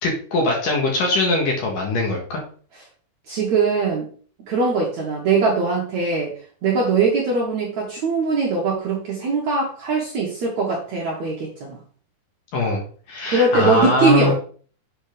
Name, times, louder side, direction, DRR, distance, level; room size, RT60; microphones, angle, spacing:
voice 1, 0.0-2.4 12.5-12.8 13.1-14.3, left 2 dB, 60° left, 0 dB, 2.8 m, -21 dB
voice 2, 3.3-4.1 4.5-6.3 6.6-11.8 13.3-14.3, right 4 dB, 55° right, -3 dB, 2.2 m, -21 dB
7.9 x 4.4 x 5.2 m, 0.43 s
omnidirectional pair, 5.1 m